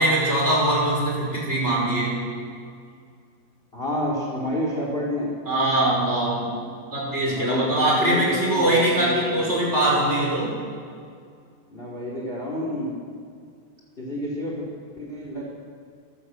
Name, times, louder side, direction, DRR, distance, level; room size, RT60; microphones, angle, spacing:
voice 1, 0.0-2.2 5.5-6.5 6.9-10.5, right 1 dB, 15° right, -4 dB, 5.7 m, -22 dB
voice 2, 3.7-5.3 7.2-7.7 8.0-9.7 11.7-13.0 14.0-14.7 15.0-15.5, equal, 15° left, -3 dB, 3.1 m, -29 dB
24.5 x 14.5 x 8.0 m, 2.2 s
omnidirectional pair, 5.1 m